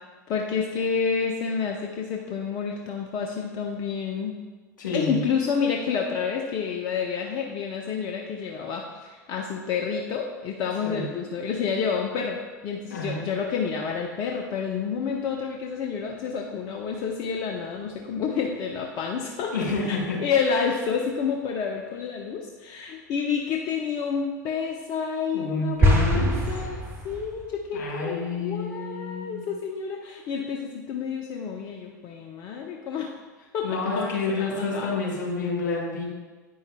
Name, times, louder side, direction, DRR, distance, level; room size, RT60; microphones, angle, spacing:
voice 1, 0.3-4.4 4.9-19.5 19.8-33.1 33.5-34.9, left 6 dB, 45° left, 2 dB, 0.6 m, -29 dB
voice 2, 4.8-5.2 10.8-11.1 12.9-13.2 19.5-20.2 20.5-20.6 25.3-26.4 27.7-29.4 33.6-36.1, left 3 dB, 75° left, -3 dB, 1.9 m, -29 dB
sound 1, 25.8-27.4, equal, 25° right, 1.1 m, -22 dB
9.1 x 5.5 x 2.2 m, 1.4 s
hypercardioid pair, 85°, 10 cm